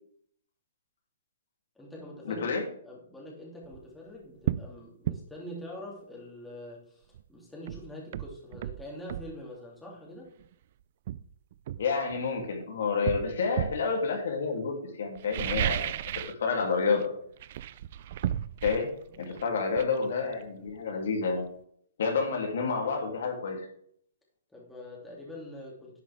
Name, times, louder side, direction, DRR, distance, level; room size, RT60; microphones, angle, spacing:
voice 1, 1.7-10.3 19.1-19.6 24.5-26.0, left 1 dB, 5° left, -4 dB, 2.7 m, -45 dB
voice 2, 2.3-2.6 11.8-15.9 16.4-17.1 18.6-18.9 19.2-21.4 22.0-23.7, left 5 dB, 65° left, 1 dB, 2.8 m, -29 dB
sound 1, 3.6-3.8 4.4-4.7 5.0-5.2 7.1-7.2 7.7-9.3 10.4-10.5 11.1-12.5 13.0-13.9 15.1-16.4 16.7-17.0 17.4-20.9 21.2-21.3, right 12 dB, 50° right, 0.4 m, -34 dB
11.0 x 7.7 x 3.5 m, 0.63 s
hypercardioid pair, 150°, 0 cm